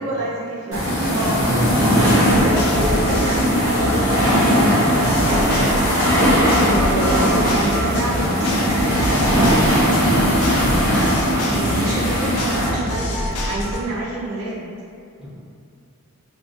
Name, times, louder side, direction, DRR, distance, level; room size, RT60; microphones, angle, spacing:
voice 1, 0.0-1.4 1.9-10.0 11.4-14.6, right 1 dB, 70° right, -5 dB, 0.4 m, -28 dB
sound 1, 0.7-12.7, equal, 65° left, 0.8 m, -19 dB
voice 2, 1.4-2.1 10.8-11.1 11.5-11.9 15.2-15.3, equal, 5° right, -12 dB, 0.6 m, -26 dB
sound 2, 2.0-13.8, left 1 dB, 80° left, 0.4 m, -27 dB
2.4 x 2.2 x 2.4 m, 2.4 s
head